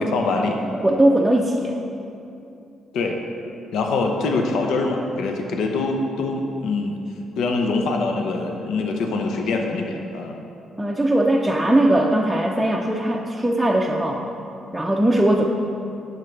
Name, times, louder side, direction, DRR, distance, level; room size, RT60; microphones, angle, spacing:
voice 1, 0.0-0.6 2.9-3.2 3.7-7.0 7.4-10.3, left 3 dB, 80° left, 2 dB, 0.7 m, -24 dB
voice 2, 0.7-1.8 10.8-14.3 14.7-15.4, right 1 dB, 5° right, -2 dB, 0.5 m, -19 dB
10.5 x 6.5 x 3.3 m, 2.7 s
cardioid pair, 90°, 0 cm